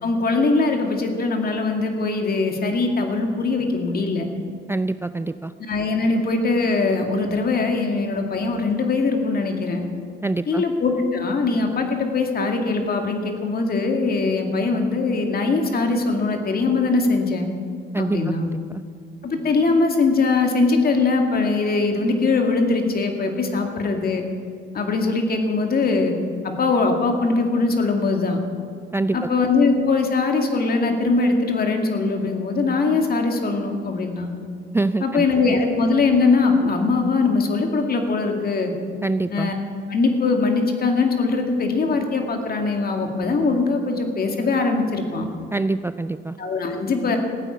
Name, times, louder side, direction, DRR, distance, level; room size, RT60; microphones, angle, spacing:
voice 1, 0.0-4.2 5.7-9.8 10.5-17.5 18.0-18.5 19.2-24.2 24.7-26.1 26.4-28.4 29.1-34.3 35.0-38.7 39.3-39.5 39.9-45.3 46.4-47.2, left 3 dB, 50° left, 4 dB, 2.2 m, -21 dB
voice 2, 4.7-5.5 10.2-10.6 17.9-18.8 28.9-29.2 34.7-35.3 39.0-39.5 45.5-46.4, right 2 dB, 10° right, 12 dB, 0.4 m, -25 dB
15.5 x 9.2 x 8.5 m, 2.2 s
cardioid pair, 90°, 20 cm